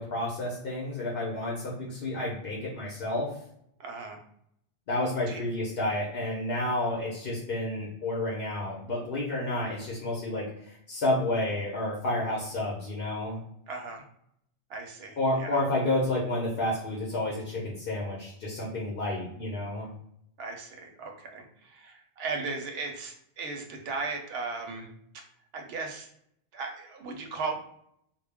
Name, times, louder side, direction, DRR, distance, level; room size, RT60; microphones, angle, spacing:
voice 1, 0.0-3.3 4.9-13.4 15.2-19.9, left 1 dB, 60° left, -4 dB, 0.8 m, -30 dB
voice 2, 3.8-4.2 5.3-5.4 13.7-14.0 14.7-15.6 20.4-24.9 25.5-26.1 26.5-27.5, right 4 dB, 70° right, 3 dB, 0.8 m, -36 dB
2.2 x 2.0 x 3.3 m, 0.72 s
omnidirectional pair, 1.1 m